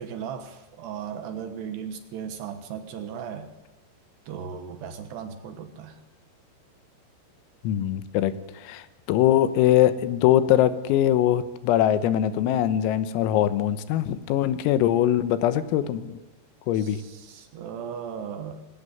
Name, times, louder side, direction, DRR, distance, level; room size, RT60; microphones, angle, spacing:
voice 1, 0.0-3.5 4.3-6.0 16.7-18.6, right 7 dB, 65° right, 9 dB, 2.9 m, -37 dB
voice 2, 7.6-16.2 16.7-17.0, left 11 dB, 85° left, 14 dB, 3.8 m, -22 dB
21.0 x 18.5 x 7.9 m, 1.1 s
omnidirectional pair, 6.0 m